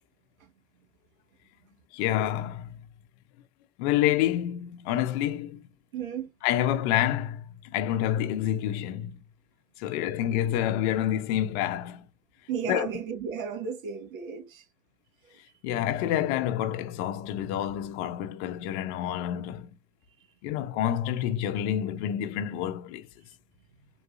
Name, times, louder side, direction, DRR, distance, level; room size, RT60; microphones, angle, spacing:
voice 1, 1.9-2.7 3.8-5.6 6.4-7.4 7.7-9.2 9.8-12.0 12.7-12.9 15.6-19.7 20.4-23.1, left 11 dB, 55° left, 0.8 m, -28 dB
voice 2, 5.9-6.3 12.5-14.7 15.2-15.5 20.2-20.3 23.2-23.3 23.7-23.8, right 7 dB, 80° right, 1.6 m, -35 dB
3.9 x 2.6 x 2.5 m
hypercardioid pair, 115°, 40 cm